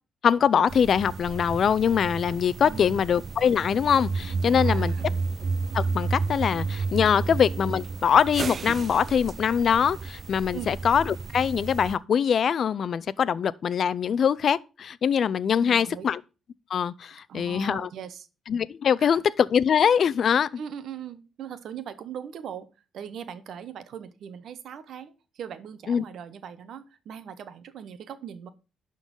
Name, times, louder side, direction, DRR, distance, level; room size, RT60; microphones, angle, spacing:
voice 1, 0.2-4.9 5.7-16.2 16.7-17.9 18.5-20.5 25.9-26.0, left 7 dB, 55° left, 0.4 m, -23 dB
sound 1, 0.7-12.0, right 4 dB, 45° right, 0.4 m, -31 dB
voice 2, 2.6-3.0 4.5-5.2 7.2-7.4 10.5-10.7 15.6-16.1 17.3-18.3 19.0-19.2 20.6-28.5, right 8 dB, 70° right, 0.9 m, -40 dB
11.5 x 3.9 x 5.4 m
cardioid pair, 90°, 0 cm